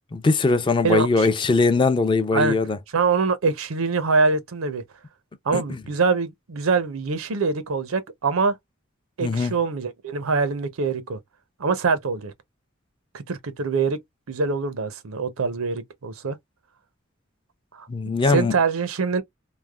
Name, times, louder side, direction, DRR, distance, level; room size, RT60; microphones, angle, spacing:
voice 1, 0.1-2.8 5.5-5.8 9.2-9.5 17.9-18.5, left 3 dB, 25° left, 0.3 m, -21 dB
voice 2, 0.8-1.3 2.3-2.6 2.9-4.8 5.5-8.6 9.2-11.2 11.6-12.3 13.1-14.0 14.3-16.4 17.7-17.9 18.3-19.2, right 4 dB, 90° right, 0.6 m, -24 dB
3.2 x 2.1 x 2.2 m
head